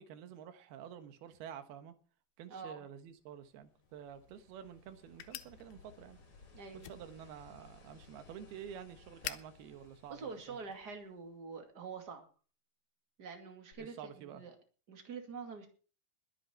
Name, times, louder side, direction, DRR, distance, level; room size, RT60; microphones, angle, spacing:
voice 1, 0.0-1.9 2.4-6.2 6.9-10.6 13.8-14.4, right 9 dB, 75° right, 9 dB, 3.2 m, -49 dB
voice 2, 2.5-2.9 6.5-7.0 10.1-12.2 13.2-14.5 14.9-15.7, right 5 dB, 30° right, 4 dB, 2.3 m, -46 dB
sound 1, 3.1-11.6 13.7-13.8, left 4 dB, 35° left, 3.3 m, -61 dB
sound 2, 3.8-11.0, left 14 dB, 75° left, 2.6 m, -51 dB
21.0 x 8.6 x 4.4 m, 0.38 s
omnidirectional pair, 4.6 m